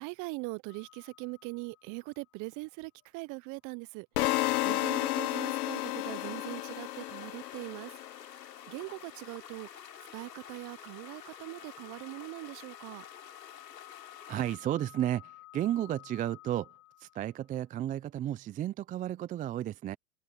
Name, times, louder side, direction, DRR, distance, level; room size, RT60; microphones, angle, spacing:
voice 1, 0.0-4.3 4.6-8.0 8.7-9.7 10.1-13.0, right 27 dB, 40° right, 0.8 m, -41 dB
sound 1, 0.7-2.6 3.0-3.1 5.7-17.6, left 21 dB, 35° left, 3.9 m, -56 dB
sound 2, 4.2-8.2, left 17 dB, 70° left, 0.7 m, -32 dB
sound 3, 4.6-14.6, left 8 dB, 85° left, 4.4 m, -50 dB
voice 2, 14.3-20.0, right 12 dB, 15° right, 0.5 m, -33 dB
hypercardioid pair, 105°, 48 cm